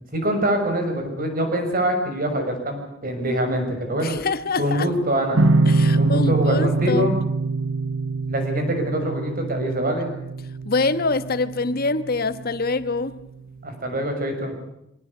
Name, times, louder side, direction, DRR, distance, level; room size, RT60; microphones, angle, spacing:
voice 1, 0.1-4.2 4.6-5.4 6.0-7.1 8.3-10.1 13.6-14.5, equal, 50° right, 6.3 m, -24 dB
voice 2, 4.0-4.9 5.7-7.1 10.6-13.2, left 3 dB, 50° left, 1.2 m, -25 dB
sound 1, 5.3-12.6, right 3 dB, 85° right, 0.9 m, -23 dB
25.0 x 18.5 x 8.3 m
head